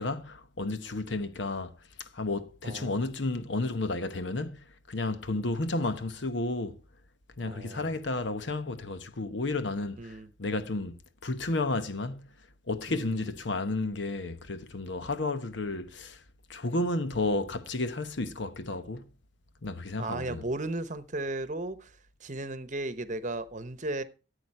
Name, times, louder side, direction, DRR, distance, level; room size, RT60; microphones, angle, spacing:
voice 1, 0.0-1.7 2.0-6.8 7.4-12.3 12.7-16.2 16.5-19.1 19.6-20.4, left 2 dB, 65° left, 1.0 m, -32 dB
voice 2, 2.6-3.0 7.4-7.9 10.0-10.3 12.9-13.3 20.0-24.0, right 2 dB, 40° right, 1.0 m, -35 dB
14.0 x 8.3 x 4.7 m
head